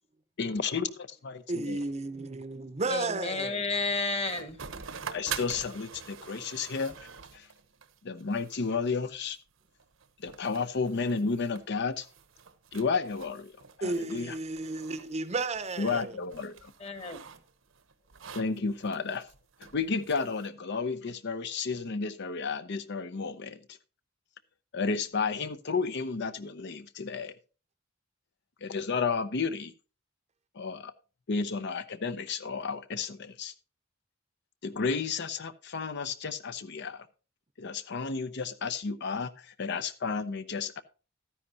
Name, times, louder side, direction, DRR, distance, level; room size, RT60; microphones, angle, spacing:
voice 1, 0.4-1.8 5.1-6.9 7.3-7.5 8.0-9.4 10.2-12.1 12.7-13.5 13.8-14.3 15.8-16.7 18.3-19.3 19.6-23.6 24.7-27.3 28.6-29.7 30.5-30.9 31.3-33.5 34.6-37.1 37.6-40.8, left 4 dB, 60° left, 0.7 m, -32 dB
voice 2, 1.5-3.7 13.8-16.2, right 3 dB, 35° right, 0.7 m, -33 dB
voice 3, 2.9-4.6 16.8-17.2, left 3 dB, 30° left, 1.5 m, -31 dB
sound 1, 4.3-20.5, right 7 dB, 80° right, 1.0 m, -45 dB
13.0 x 10.0 x 2.8 m
head